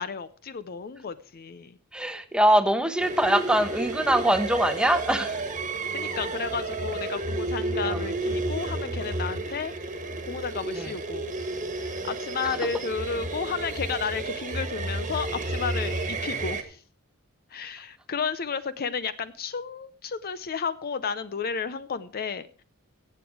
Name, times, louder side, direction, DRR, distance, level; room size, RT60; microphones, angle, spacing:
voice 1, 0.0-1.8 5.9-11.3 11.7-16.8 17.5-22.6, left 5 dB, 45° left, 14 dB, 0.5 m, -33 dB
voice 2, 1.9-5.4 7.9-8.0 10.7-10.9, right 1 dB, 5° right, 9 dB, 1.0 m, -23 dB
sound 1, 3.0-16.6, right 2 dB, 35° right, 1.5 m, -31 dB
15.0 x 8.0 x 4.7 m, 0.42 s
head